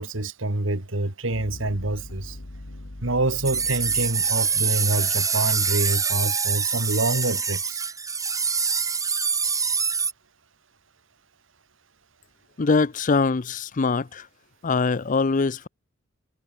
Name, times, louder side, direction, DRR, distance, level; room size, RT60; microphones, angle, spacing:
voice 1, 0.0-2.4 3.0-7.8, right 2 dB, 70° right, 2.4 m, -26 dB
sound 1, 1.3-5.4, left 1 dB, 75° left, 1.8 m, -41 dB
sound 2, 3.4-10.1, right 5 dB, 15° right, 1.6 m, -25 dB
voice 2, 12.6-14.3 14.6-15.7, left 4 dB, 40° left, 0.6 m, -23 dB
head